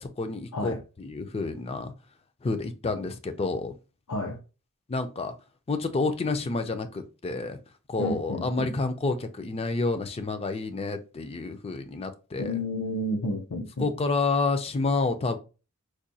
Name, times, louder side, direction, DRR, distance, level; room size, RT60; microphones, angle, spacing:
voice 1, 0.0-1.9 2.4-3.7 4.9-5.3 5.7-7.6 7.9-12.6 13.8-15.4, left 3 dB, 25° left, 0.4 m, -29 dB
voice 2, 8.0-8.8 12.4-13.9, left 1 dB, 90° left, 0.6 m, -31 dB
4.8 x 2.2 x 2.7 m
head